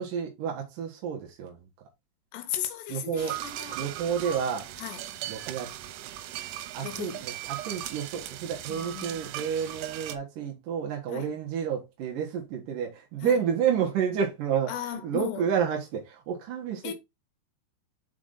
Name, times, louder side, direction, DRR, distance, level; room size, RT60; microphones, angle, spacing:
voice 1, 0.0-1.7 2.9-3.4 3.7-4.7 5.3-5.8 6.7-16.9, right 7 dB, 70° right, 2.1 m, -30 dB
voice 2, 2.3-3.8 4.8-5.2 6.8-7.2 8.7-9.2 11.1-11.3 13.2-13.4 14.7-15.5 16.8-16.9, left 11 dB, 75° left, 2.7 m, -36 dB
sound 1, 3.2-10.2, right 12 dB, 90° right, 3.4 m, -38 dB
6.6 x 5.1 x 3.9 m
omnidirectional pair, 5.6 m